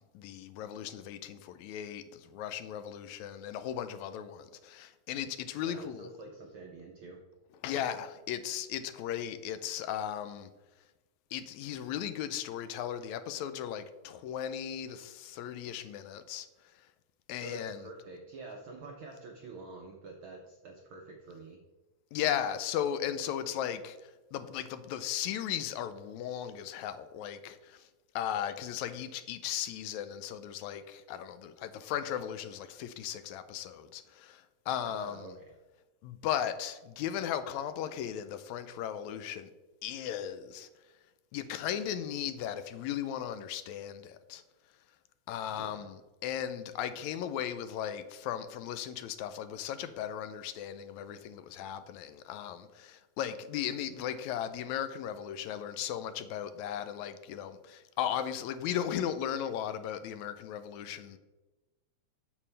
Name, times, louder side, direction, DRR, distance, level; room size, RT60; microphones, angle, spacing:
voice 1, 0.0-6.1 7.6-10.5 11.3-16.5 17.3-17.9 22.1-24.0 24.3-27.9 28.2-35.3 36.0-39.5 39.8-40.7 41.3-44.4 45.3-61.2, left 10 dB, 85° left, 1.9 m, -36 dB
voice 2, 5.6-7.2 17.4-21.6 34.8-35.4 45.5-45.9, right 3 dB, 75° right, 1.2 m, -47 dB
8.4 x 7.0 x 3.3 m
omnidirectional pair, 3.3 m